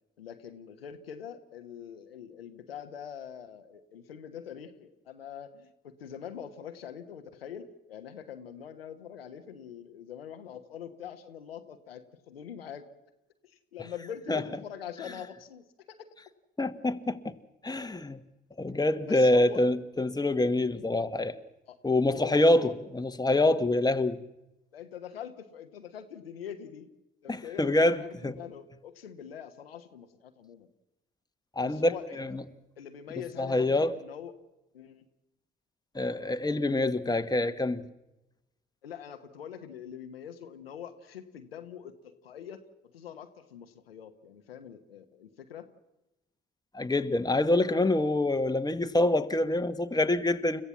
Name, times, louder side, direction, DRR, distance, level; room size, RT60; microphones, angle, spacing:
voice 1, 0.2-12.9 13.4-16.1 19.1-19.6 21.7-21.8 22.1-22.7 24.7-26.9 27.2-30.7 31.6-32.4 32.8-34.3 34.7-35.1 38.8-42.6 42.9-45.7, left 8 dB, 90° left, 1.1 m, -44 dB
voice 2, 16.6-17.4 17.6-18.2 18.6-21.4 21.8-24.2 27.3-28.4 31.5-32.4 33.4-34.0 35.9-37.9 46.7-50.6, left 2 dB, 15° left, 1.5 m, -26 dB
30.0 x 15.0 x 7.3 m
hypercardioid pair, 45°, 29 cm